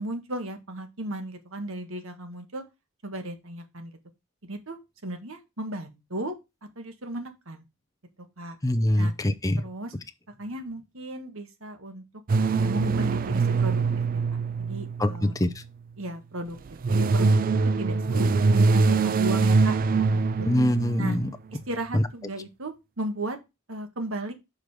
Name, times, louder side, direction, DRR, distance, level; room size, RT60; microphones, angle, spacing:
voice 1, 0.0-2.6 3.0-3.9 4.4-6.3 6.7-7.6 8.4-8.6 9.0-9.1 9.6-9.9 10.4-12.0 12.5-13.8 14.1-14.2 14.6-15.3 16.0-16.6 16.9-20.5 21.0-21.2 21.7-23.4 23.7-24.3, right 1 dB, 65° right, 1.6 m, -35 dB
voice 2, 8.6-9.6 15.0-15.5 20.5-21.3 21.9-22.0, left 1 dB, 15° left, 0.6 m, -23 dB
sound 1, 12.3-15.7 16.6-21.4, right 4 dB, 40° right, 0.4 m, -23 dB
6.3 x 5.2 x 4.9 m
head